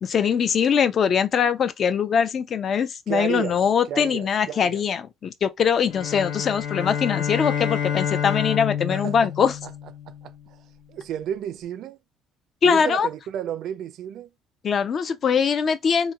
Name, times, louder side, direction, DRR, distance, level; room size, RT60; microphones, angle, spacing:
voice 1, 0.0-9.5 12.6-13.1 14.6-16.1, left 7 dB, 45° left, 0.4 m, -22 dB
voice 2, 3.1-4.8 8.9-9.7 10.1-10.6 10.9-12.0 12.6-14.3, right 10 dB, 65° right, 0.3 m, -32 dB
sound 1, 5.9-10.3, left 8 dB, 85° left, 0.7 m, -28 dB
3.0 x 2.2 x 2.3 m
cardioid pair, 105°, 0 cm